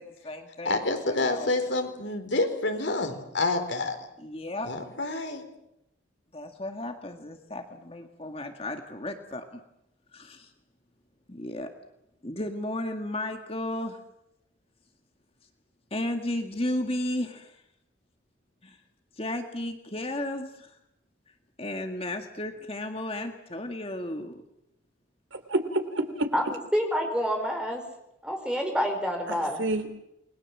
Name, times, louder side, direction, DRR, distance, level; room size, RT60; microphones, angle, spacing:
voice 1, 0.0-0.8 1.1-1.5 4.2-4.7 6.3-9.6 10.1-10.5 11.3-11.7 12.2-14.0 15.9-17.6 18.6-18.8 19.2-20.8 21.6-24.4, left 1 dB, 30° left, 5 dB, 1.9 m, -34 dB
voice 2, 0.6-4.0 4.6-5.4, left 2 dB, 65° left, 5 dB, 4.3 m, -28 dB
voice 3, 25.3-26.3 29.3-30.0, right 2 dB, 75° right, 8 dB, 3.1 m, -29 dB
voice 4, 26.7-27.8 28.2-29.6, equal, 5° right, 3 dB, 4.9 m, -27 dB
29.0 x 21.5 x 7.4 m, 0.83 s
head